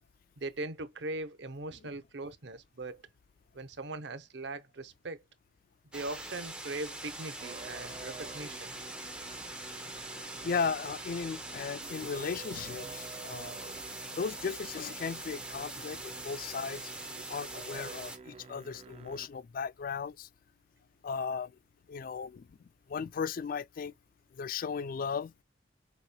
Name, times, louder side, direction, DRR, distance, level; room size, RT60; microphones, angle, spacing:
voice 1, 0.4-3.1 3.5-5.2 5.9-8.7 17.1-17.2, right 2 dB, 65° right, 0.7 m, -40 dB
sound 1, 5.9-18.2, right 2 dB, 5° right, 0.9 m, -43 dB
Musical instrument, 7.4-19.3, right 4 dB, 30° right, 0.4 m, -50 dB
voice 2, 10.4-13.6 14.1-16.9 17.3-20.3 21.0-21.5 21.9-22.5 22.9-23.9 24.3-25.3, left 5 dB, 50° left, 0.3 m, -36 dB
6.6 x 3.0 x 2.2 m
head